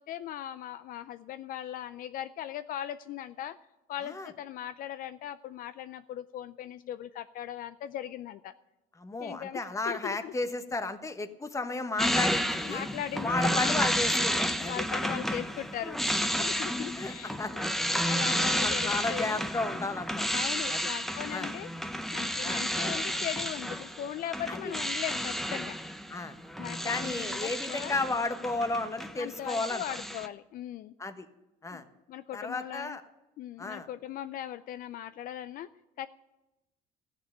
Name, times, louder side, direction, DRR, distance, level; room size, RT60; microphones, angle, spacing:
voice 1, 0.0-3.6 3.9-8.5 9.2-10.3 12.7-13.9 14.7-19.4 20.3-21.7 22.1-25.8 26.6-28.0 29.2-30.9 31.7-31.8 32.1-33.0 33.4-35.7 36.0-36.1, left 11 dB, 60° left, 13 dB, 0.5 m, -39 dB
voice 2, 9.0-12.8 13.2-14.8 17.0-17.7 18.6-20.3 20.7-20.9 21.3-21.5 22.4-22.6 24.5-24.7 26.1-26.4 26.8-29.8 31.0-31.3 31.6-31.8 32.3-33.0 33.6-33.9, left 3 dB, 20° left, 9 dB, 1.2 m, -33 dB
sound 1, 12.0-29.2 29.4-30.3, equal, ahead, 0.8 m, -31 dB
13.5 x 6.8 x 9.9 m, 1.0 s
cardioid pair, 100°, 17 cm